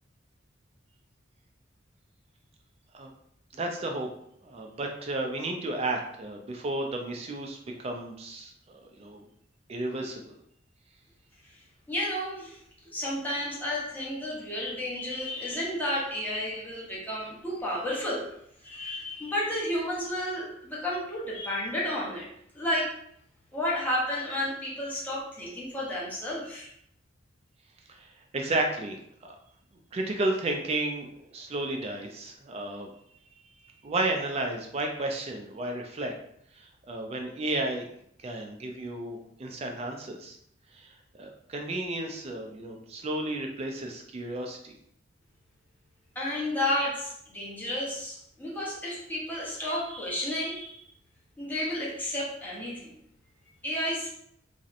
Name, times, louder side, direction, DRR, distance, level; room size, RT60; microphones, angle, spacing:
voice 1, 3.5-4.1 4.4-9.3 9.7-10.3 27.9-28.1 28.3-29.0 29.2-29.4 29.9-31.1 31.3-32.9 33.8-36.1 36.6-37.9 38.2-40.4 40.7-40.9 41.2-44.7, right 2 dB, 30° right, 3 dB, 0.3 m, -32 dB
voice 2, 11.9-12.6 12.9-18.3 18.6-22.3 22.5-22.9 23.5-26.7 46.2-50.9 51.4-52.9 53.6-54.1, left 1 dB, 10° left, -6 dB, 0.6 m, -32 dB
2.7 x 2.0 x 2.4 m, 0.72 s
head